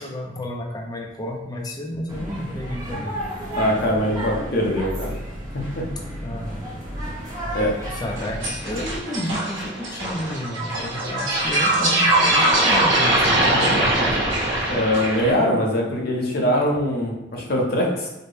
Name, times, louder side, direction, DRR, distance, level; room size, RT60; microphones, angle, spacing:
voice 1, 0.0-3.2 6.2-6.7 7.8-14.0, left 1 dB, 20° left, 1 dB, 0.4 m, -31 dB
sound 1, 2.1-9.0, equal, 20° right, 0.8 m, -32 dB
voice 2, 3.6-5.1 5.7-5.9 7.5-7.7 14.7-18.1, equal, 50° left, -1 dB, 0.7 m, -22 dB
sound 2, 8.2-15.3, right 1 dB, 70° right, 1.2 m, -21 dB
4.2 x 2.1 x 3.2 m, 0.95 s
head